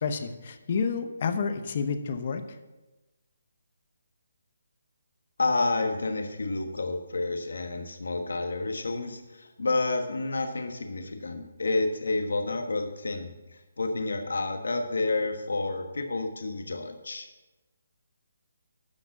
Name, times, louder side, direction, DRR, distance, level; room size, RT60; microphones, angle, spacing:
voice 1, 0.0-2.6, left 5 dB, 35° left, 9 dB, 0.9 m, -30 dB
voice 2, 5.4-17.3, left 3 dB, 85° left, 5 dB, 1.3 m, -30 dB
12.0 x 5.1 x 7.2 m, 1.1 s
hypercardioid pair, 170°, 0 cm